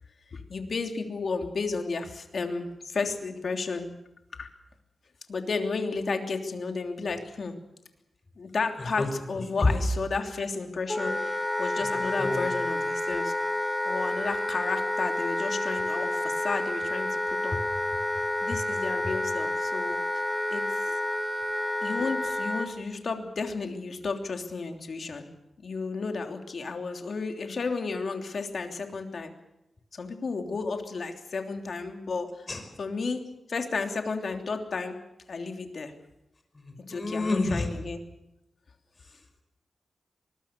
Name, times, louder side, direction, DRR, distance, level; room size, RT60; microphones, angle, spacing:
voice 1, 0.3-3.9 4.4-4.5 5.3-7.5 8.4-9.0 9.3-13.3 13.8-17.6 18.4-20.2 20.5-20.6 21.8-25.3 25.6-29.3 29.9-32.5 32.8-35.0 35.3-35.9 36.9-38.0, left 4 dB, 60° left, 5 dB, 3.1 m, -32 dB
Wind instrument woodwind instrument, 10.9-22.7, left 1 dB, 10° left, 3.4 m, -29 dB
voice 2, 11.8-12.5 32.5-32.6 36.5-37.7, left 3 dB, 30° left, 6 dB, 5.4 m, -28 dB
24.0 x 21.0 x 6.8 m, 0.90 s
wide cardioid pair, 105°, 0 cm